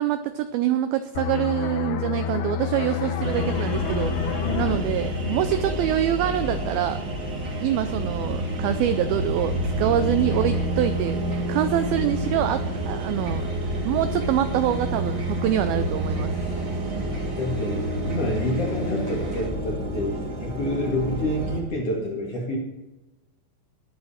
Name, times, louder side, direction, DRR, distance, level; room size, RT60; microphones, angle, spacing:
voice 1, 0.0-7.0 7.6-13.5 13.8-16.3, right 11 dB, 85° right, 10 dB, 2.1 m, -25 dB
sound 1, 1.2-6.5 6.9-7.1, left 8 dB, 80° left, 2.5 m, -30 dB
sound 2, 2.8-19.5, left 1 dB, 25° right, 1.8 m, -39 dB
sound 3, 3.2-21.6, right 1 dB, 55° right, 1.1 m, -29 dB
voice 2, 4.4-4.9 10.0-10.2 16.4-16.6 17.4-22.6, left 1 dB, 45° left, -1 dB, 2.4 m, -28 dB
18.5 x 7.8 x 4.3 m, 1.0 s
omnidirectional pair, 4.9 m